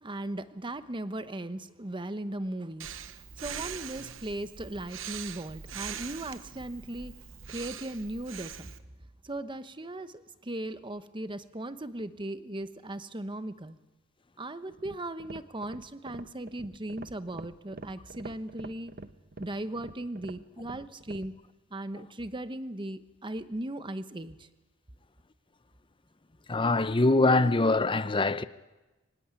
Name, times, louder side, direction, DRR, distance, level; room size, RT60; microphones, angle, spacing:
voice 1, 0.0-7.1 7.5-8.7 9.2-13.8 14.4-18.9 19.4-21.3 21.7-24.5, right 1 dB, 25° right, 1.0 m, -38 dB
Breathing, 2.8-8.8, right 8 dB, 70° right, 1.0 m, -42 dB
sound 1, 14.7-21.4, right 2 dB, 50° right, 1.0 m, -45 dB
voice 2, 26.5-28.4, left 2 dB, 25° left, 0.7 m, -23 dB
24.5 x 17.5 x 9.7 m
head